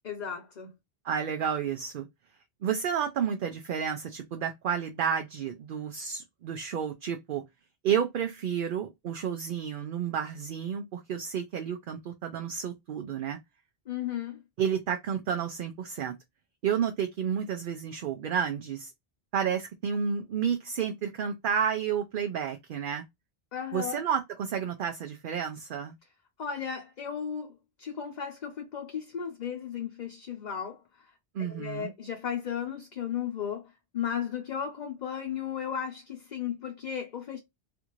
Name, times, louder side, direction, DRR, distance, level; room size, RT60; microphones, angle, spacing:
voice 1, 0.0-0.7 13.9-14.4 23.5-24.0 26.4-27.5 27.8-30.8 31.4-33.7 33.9-37.4, left 8 dB, 50° left, 0.7 m, -35 dB
voice 2, 1.0-2.1 2.6-7.4 7.8-13.4 14.6-16.2 16.6-18.9 19.3-23.0 23.7-25.9 31.3-31.9, right 8 dB, 60° right, 0.7 m, -31 dB
3.4 x 2.5 x 2.9 m
omnidirectional pair, 1.1 m